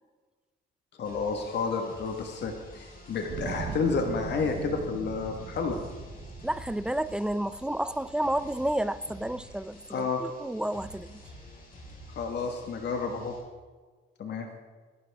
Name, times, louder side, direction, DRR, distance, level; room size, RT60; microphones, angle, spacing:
voice 1, 1.0-5.8 9.9-10.2 12.1-13.4 14.2-14.5, left 4 dB, 60° left, 3 dB, 1.5 m, -30 dB
sound 1, 1.0-13.4, equal, 45° left, 4.7 m, -49 dB
sound 2, 3.3-8.5 9.3-9.4, right 7 dB, 55° right, 0.9 m, -40 dB
voice 2, 6.4-11.1, right 1 dB, 5° right, 15 dB, 0.5 m, -31 dB
20.0 x 11.5 x 3.5 m, 1.4 s
cardioid pair, 90°, 20 cm